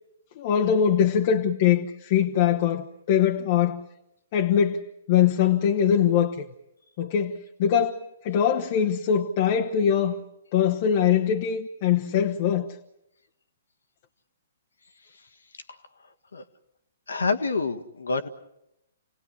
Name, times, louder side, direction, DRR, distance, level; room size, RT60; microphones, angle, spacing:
voice 1, 0.4-3.9 4.3-6.5 7.0-10.2 10.5-12.7, left 8 dB, 40° left, 1.3 m, -22 dB
voice 2, 17.1-18.3, left 4 dB, 70° left, 1.7 m, -27 dB
28.5 x 18.5 x 9.9 m
figure-of-eight pair, 120°, 0 cm